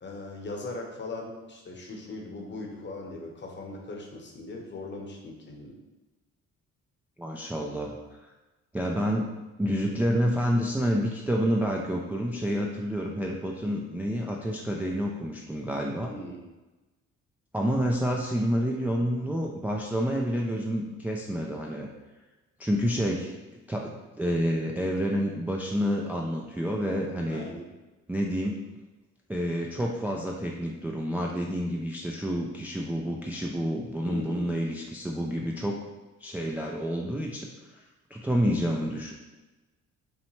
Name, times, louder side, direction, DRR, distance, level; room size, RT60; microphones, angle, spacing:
voice 1, 0.0-5.8 16.1-16.4 27.3-27.7 34.0-34.5, left 2 dB, 40° left, 1 dB, 0.9 m, -39 dB
voice 2, 7.2-8.3 8.7-16.1 17.5-21.9 22.6-27.5 28.1-28.6 29.3-35.8 36.2-37.8 38.1-39.1, equal, 5° right, -1 dB, 0.3 m, -29 dB
5.5 x 2.1 x 3.1 m, 1.1 s
cardioid pair, 90°, 30 cm